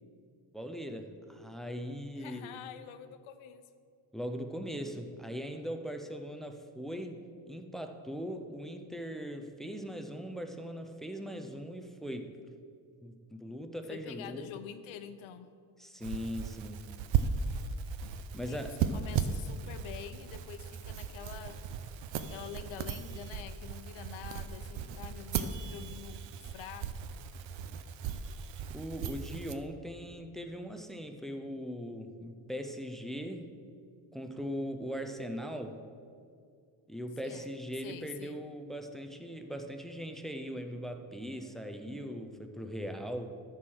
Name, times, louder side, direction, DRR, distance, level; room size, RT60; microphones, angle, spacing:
voice 1, 0.5-2.5 4.1-12.3 13.0-14.5 15.8-16.8 18.3-18.8 28.7-33.5 34.1-35.8 36.9-43.4, equal, ahead, 6 dB, 0.3 m, -40 dB
voice 2, 2.2-3.6 13.9-15.5 18.4-21.6 22.2-27.1 37.2-38.4, left 9 dB, 85° left, 10 dB, 0.8 m, -47 dB
sound 1, 16.0-29.5, right 7 dB, 70° right, 0.7 m, -36 dB
13.0 x 4.7 x 6.2 m, 2.3 s
cardioid pair, 165°, 46 cm